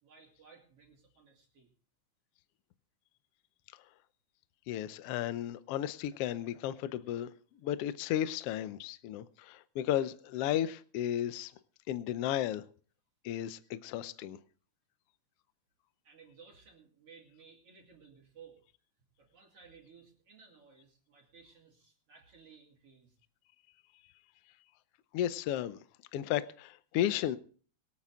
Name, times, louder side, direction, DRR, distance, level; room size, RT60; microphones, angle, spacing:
voice 1, 0.0-1.7 16.0-18.6 19.2-23.2, right 5 dB, 50° right, 3.5 m, -58 dB
voice 2, 4.7-7.3 7.6-11.5 11.9-12.6 13.2-14.4 25.1-25.8 26.1-27.4, left 11 dB, 75° left, 1.4 m, -34 dB
23.5 x 8.7 x 3.6 m
omnidirectional pair, 3.4 m